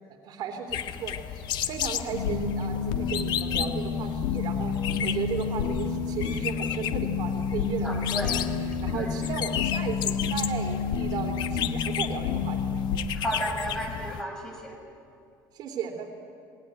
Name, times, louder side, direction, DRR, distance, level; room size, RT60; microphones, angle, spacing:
voice 1, 0.2-12.8 15.5-16.1, right 7 dB, 55° right, 4 dB, 3.0 m, -35 dB
sound 1, 0.7-14.2, left 10 dB, 60° left, 1.2 m, -34 dB
sound 2, 2.1-13.0, left 6 dB, 85° left, 2.5 m, -30 dB
voice 2, 7.8-8.5 8.9-9.1 13.2-14.8, equal, 5° left, 1 dB, 7.4 m, -33 dB
27.0 x 21.0 x 9.6 m, 2.4 s
cardioid pair, 120°, 9 cm